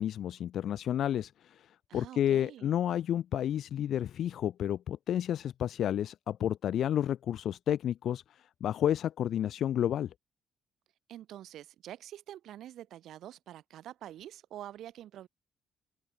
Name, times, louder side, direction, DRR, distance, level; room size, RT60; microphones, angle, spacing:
voice 1, 0.0-10.1, left 10 dB, 60° left, 1.9 m, -31 dB
voice 2, 1.9-2.7 11.1-15.3, right 12 dB, 65° right, 6.8 m, -46 dB
figure-of-eight pair, 40°, 0 cm